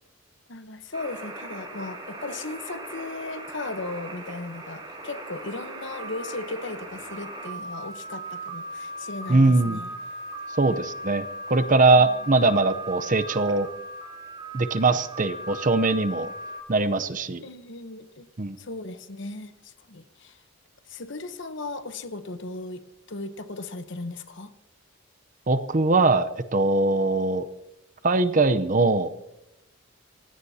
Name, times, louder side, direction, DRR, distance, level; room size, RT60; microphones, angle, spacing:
voice 1, 0.5-9.9 11.9-12.3 17.4-18.3 18.6-20.4 20.9-24.5, left 2 dB, 55° left, 10 dB, 1.0 m, -37 dB
sound 1, 0.9-16.6, right 1 dB, 20° right, 2.9 m, -38 dB
voice 2, 9.3-9.8 10.6-13.7 14.5-16.3 16.7-17.4 18.4-18.6 25.5-27.5 28.0-29.1, right 3 dB, 40° right, 11 dB, 0.7 m, -21 dB
27.0 x 16.5 x 2.8 m, 0.89 s
head